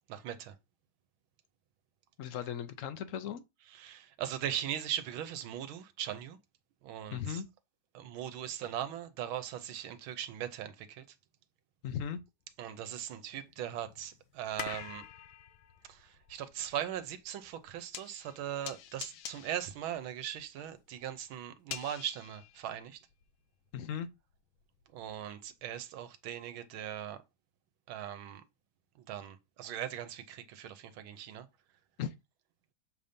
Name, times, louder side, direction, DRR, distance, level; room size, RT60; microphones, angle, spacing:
voice 1, 0.1-0.6 3.7-6.4 6.8-7.4 7.9-11.0 12.6-15.1 15.8-23.1 24.9-27.2 27.9-28.4 29.1-31.5, right 10 dB, 85° right, 1.6 m, -39 dB
voice 2, 2.2-3.4 7.1-7.5 11.8-12.2 23.7-24.1 32.0-32.1, left 8 dB, 70° left, 0.7 m, -37 dB
sound 1, 12.5-12.6 13.2-23.3 23.7-25.3 25.7-25.8, left 10 dB, 85° left, 1.5 m, -47 dB
7.1 x 2.7 x 5.1 m
omnidirectional pair, 2.2 m